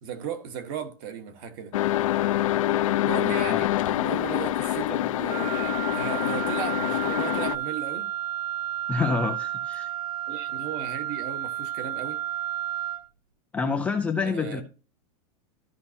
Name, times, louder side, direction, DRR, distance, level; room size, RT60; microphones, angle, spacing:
voice 1, 0.0-1.8 3.0-8.1 10.3-12.2 14.2-14.6, right 7 dB, 40° right, 1.3 m, -36 dB
sound 1, 1.7-7.6, left 14 dB, 65° left, 0.6 m, -26 dB
Wind instrument woodwind instrument, 5.3-13.1, right 12 dB, 85° right, 0.7 m, -32 dB
voice 2, 8.9-9.9 13.5-14.6, left 4 dB, 5° left, 0.3 m, -27 dB
13.5 x 5.3 x 2.7 m
supercardioid pair, 170°, 18 cm